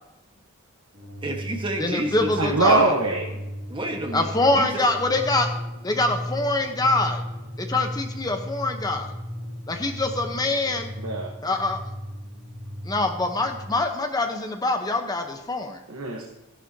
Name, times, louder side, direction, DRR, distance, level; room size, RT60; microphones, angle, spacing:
sound 1, 0.9-13.7, equal, 55° right, 2.5 m, -36 dB
voice 1, 1.2-3.0 3.3-3.4 3.7-4.3 4.5-4.7, right 1 dB, 25° right, 2 dB, 1.4 m, -29 dB
voice 2, 1.8-2.8 4.1-5.5 5.8-7.2 7.6-9.1 9.7-10.9 11.4-11.8 12.8-15.8, left 2 dB, 15° left, 4 dB, 0.9 m, -24 dB
voice 3, 2.4-3.2 11.0-11.3 15.9-16.2, right 2 dB, 85° right, 0 dB, 1.2 m, -22 dB
13.5 x 11.0 x 2.9 m, 1.0 s
head